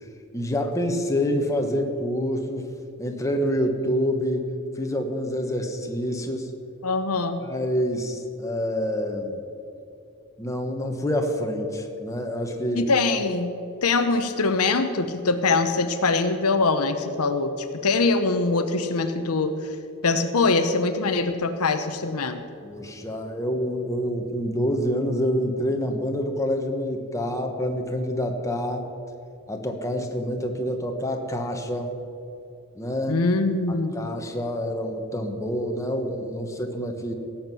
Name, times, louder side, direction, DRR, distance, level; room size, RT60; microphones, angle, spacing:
voice 1, 0.3-2.7 3.0-4.5 4.8-6.5 7.4-9.4 10.4-12.9 22.6-28.9 29.5-32.0 32.7-33.2 33.9-37.1, equal, 15° left, 3 dB, 1.2 m, -27 dB
voice 2, 6.8-7.4 12.7-13.5 13.8-19.7 20.0-22.4 33.1-33.9, left 3 dB, 85° left, 8 dB, 0.9 m, -23 dB
17.0 x 7.4 x 6.1 m, 2.6 s
head